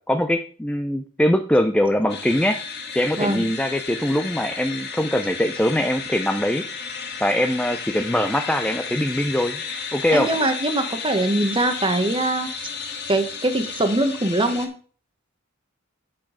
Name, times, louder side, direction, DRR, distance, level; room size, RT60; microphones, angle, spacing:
voice 1, 0.1-2.6 2.9-6.6 7.2-9.6 9.9-10.3, left 1 dB, 5° left, 7 dB, 0.5 m, -22 dB
sound 1, 2.1-14.7, left 5 dB, 55° left, 1.8 m, -33 dB
voice 2, 3.2-3.5 10.1-12.5 13.1-14.7, right 2 dB, 25° right, 7 dB, 1.1 m, -22 dB
8.8 x 6.2 x 5.0 m, 0.43 s
head